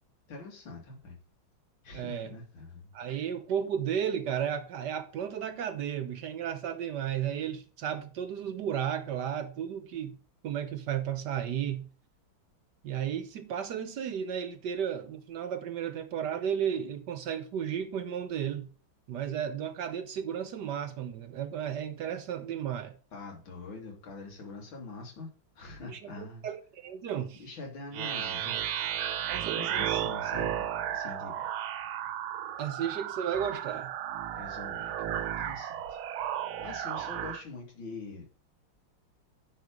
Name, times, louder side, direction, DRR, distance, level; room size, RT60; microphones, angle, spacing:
voice 1, 0.3-1.2 1.8-2.9 23.1-25.3 25.5-26.5 27.3-28.6 29.5-31.5 34.3-36.0 36.6-38.3, left 3 dB, 75° left, 3.0 m, -44 dB
voice 2, 1.9-2.3 2.9-10.2 10.4-11.9 12.8-18.7 19.1-22.9 25.9-27.4 29.3-29.6 29.9-30.0 32.6-33.9, right 9 dB, 65° right, 1.2 m, -33 dB
sound 1, 27.9-37.4, right 10 dB, 85° right, 1.5 m, -34 dB
9.7 x 4.5 x 5.1 m
omnidirectional pair, 2.2 m